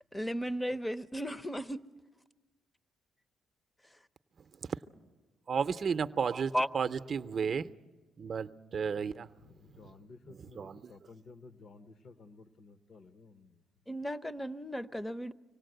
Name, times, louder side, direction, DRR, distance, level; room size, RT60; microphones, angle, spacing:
voice 1, 0.1-1.8 3.9-4.0 6.5-6.7 13.9-15.3, equal, 10° left, 15 dB, 0.6 m, -35 dB
voice 2, 5.5-7.7 8.2-9.3 9.7-9.8 10.3-10.9, right 6 dB, 45° right, 11 dB, 0.6 m, -33 dB
voice 3, 9.4-13.6, left 3 dB, 55° left, 11 dB, 1.0 m, -54 dB
25.0 x 17.5 x 7.9 m, 1.3 s
cardioid pair, 90°, 0 cm